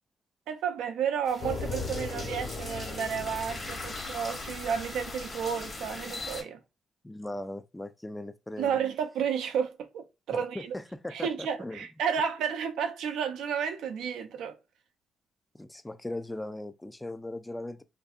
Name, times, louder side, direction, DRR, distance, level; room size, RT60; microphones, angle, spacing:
voice 1, 0.5-6.6 8.6-10.7 11.1-14.6, right 7 dB, 90° right, 0.4 m, -32 dB
sound 1, 1.3-6.4, left 2 dB, 35° left, 1.1 m, -40 dB
sound 2, 1.4-6.2, left 4 dB, 70° left, 1.3 m, -39 dB
voice 2, 7.0-8.8 10.3-11.9 15.6-17.8, left 1 dB, 15° left, 0.4 m, -39 dB
2.6 x 2.5 x 2.3 m
cardioid pair, 75°, 0 cm